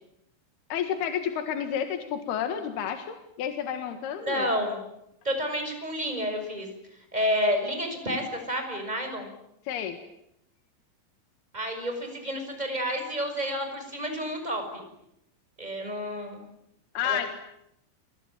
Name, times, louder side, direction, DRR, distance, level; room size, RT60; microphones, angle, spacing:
voice 1, 0.7-4.5 9.6-10.0 16.9-17.3, left 9 dB, 65° left, 8 dB, 3.2 m, -30 dB
voice 2, 4.2-4.8 5.2-6.7 7.1-9.3 11.5-14.8 15.6-16.4 17.0-17.3, equal, 10° right, 5 dB, 5.8 m, -30 dB
29.0 x 22.0 x 9.0 m, 0.81 s
omnidirectional pair, 5.7 m